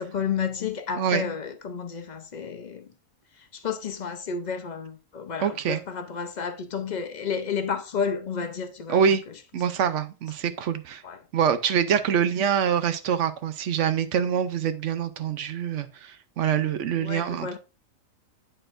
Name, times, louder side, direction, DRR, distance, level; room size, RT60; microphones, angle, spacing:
voice 1, 0.0-2.9 3.4-9.0 11.0-11.2 16.5-16.6 17.0-17.6, left 6 dB, 50° left, 0.6 m, -31 dB
voice 2, 5.4-5.8 8.9-9.2 9.5-11.0 11.3-17.6, right 8 dB, 70° right, 0.9 m, -25 dB
9.9 x 4.4 x 2.5 m
omnidirectional pair, 1.4 m